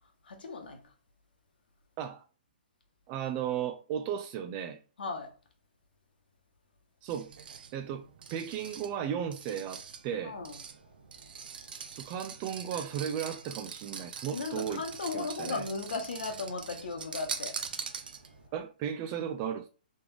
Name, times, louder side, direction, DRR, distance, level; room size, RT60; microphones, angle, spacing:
voice 1, 0.3-0.8 5.0-5.3 10.2-10.5 14.3-17.5, left 4 dB, 80° left, 1.3 m, -36 dB
voice 2, 3.1-4.8 7.0-7.3 7.7-8.1 8.3-10.4 11.9-14.8 15.1-15.7 18.5-19.7, right 8 dB, 30° right, 0.4 m, -35 dB
sound 1, 7.1-18.5, right 6 dB, 70° right, 0.6 m, -43 dB
3.8 x 3.4 x 3.4 m
hypercardioid pair, 145°, 5 cm